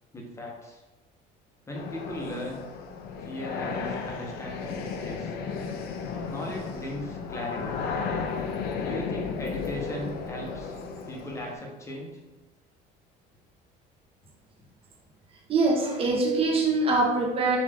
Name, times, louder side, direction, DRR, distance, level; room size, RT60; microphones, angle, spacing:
voice 1, 0.1-0.8 1.7-2.7 3.2-5.4 6.3-7.8 8.8-10.8 11.1-12.2, left 1 dB, 15° left, -1 dB, 1.0 m, -37 dB
sound 1, 1.7-11.5, left 5 dB, 60° left, 0.5 m, -34 dB
voice 2, 15.5-17.6, right 3 dB, 30° right, -1 dB, 1.1 m, -23 dB
5.3 x 2.7 x 3.5 m, 1.1 s
cardioid pair, 135°, 18 cm